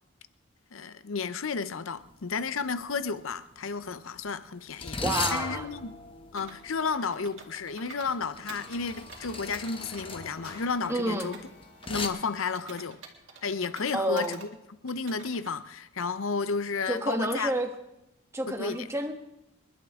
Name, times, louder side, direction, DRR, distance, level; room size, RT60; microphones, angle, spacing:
voice 1, 0.7-5.0 5.3-5.9 6.3-11.4 11.9-13.0 13.4-14.5 14.8-17.5 18.5-18.9, left 5 dB, 70° left, 0.7 m, -32 dB
sound 1, 2.0-2.2 2.5-2.8 3.6-12.1, left 4 dB, 25° left, 1.0 m, -38 dB
voice 2, 5.0-5.7 10.9-11.3 13.9-14.4 16.9-17.7 18.3-19.1, right 1 dB, 15° right, 1.3 m, -29 dB
Computer keyboard, 6.4-8.2 8.5-11.4 11.8-14.5 14.9-15.6, right 4 dB, 65° right, 2.5 m, -49 dB
sound 2, 8.3-12.7, left 2 dB, 55° left, 7.5 m, -52 dB
28.0 x 11.5 x 3.7 m
head